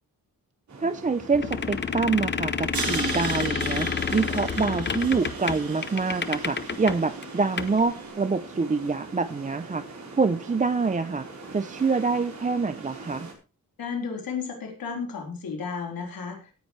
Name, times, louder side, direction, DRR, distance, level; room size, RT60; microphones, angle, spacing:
sound 1, 0.7-13.3, right 3 dB, 55° right, 4.4 m, -42 dB
voice 1, 0.8-9.8 10.1-11.2 11.5-13.3, right 4 dB, 20° right, 11 dB, 0.5 m, -26 dB
sound 2, 1.3-7.0 7.2-7.3 7.6-7.8, left 6 dB, 30° left, 0.7 m, -29 dB
Crash cymbal, 2.7-7.8, right 5 dB, 90° right, 4.0 m, -37 dB
voice 2, 13.8-16.5, left 5 dB, 85° left, 1 dB, 4.3 m, -33 dB
17.5 x 9.7 x 3.3 m, 0.31 s
wide cardioid pair, 175°, 34 cm